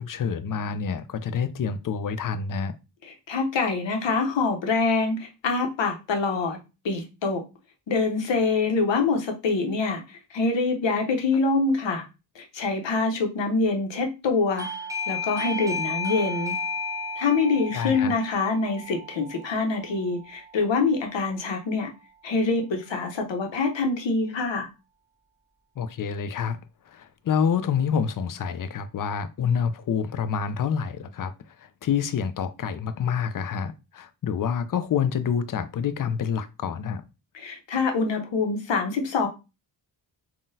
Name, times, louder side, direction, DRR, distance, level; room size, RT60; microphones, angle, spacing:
voice 1, 0.0-2.8 17.7-18.1 25.8-26.6 26.9-37.0, left 7 dB, 50° left, 0.4 m, -27 dB
voice 2, 3.1-6.6 6.8-7.4 7.9-12.0 12.4-14.7 15.1-16.6 17.2-21.9 22.2-24.7 37.3-39.3, left 4 dB, 80° left, 0.8 m, -25 dB
Doorbell, 14.6-21.1, left 2 dB, 10° right, 0.5 m, -33 dB
3.7 x 2.2 x 2.6 m
cardioid pair, 50°, 44 cm